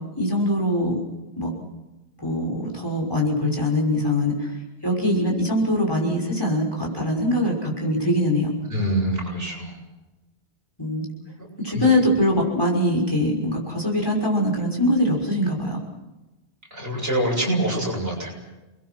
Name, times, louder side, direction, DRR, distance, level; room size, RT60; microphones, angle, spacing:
voice 1, 0.2-1.0 1.4-1.5 2.2-8.5 10.8-11.1 11.6-15.8, left 1 dB, 20° left, 0 dB, 6.0 m, -22 dB
voice 2, 8.7-9.7 11.7-11.9 16.7-18.3, right 1 dB, 65° right, -1 dB, 7.5 m, -25 dB
30.0 x 21.0 x 6.2 m, 1.1 s
omnidirectional pair, 1.1 m